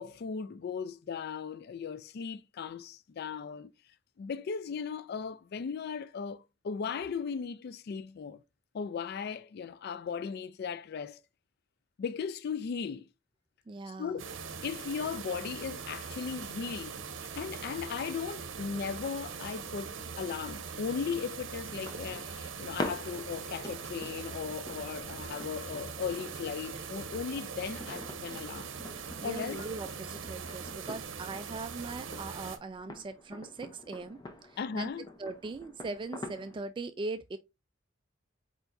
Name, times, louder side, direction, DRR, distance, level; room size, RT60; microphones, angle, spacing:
voice 1, 0.0-3.7 4.2-8.4 8.7-11.2 12.0-13.0 13.9-14.2 14.6-28.7 29.2-29.7 34.6-35.1, left 6 dB, 55° left, 0.3 m, -37 dB
voice 2, 13.7-14.2 29.2-34.2 34.4-34.9 35.2-37.4, right 3 dB, 25° right, 0.3 m, -40 dB
sound 1, 14.2-32.6, right 6 dB, 70° right, 0.7 m, -42 dB
sound 2, 21.6-36.7, left 2 dB, 20° left, 0.7 m, -46 dB
4.5 x 4.5 x 2.6 m
head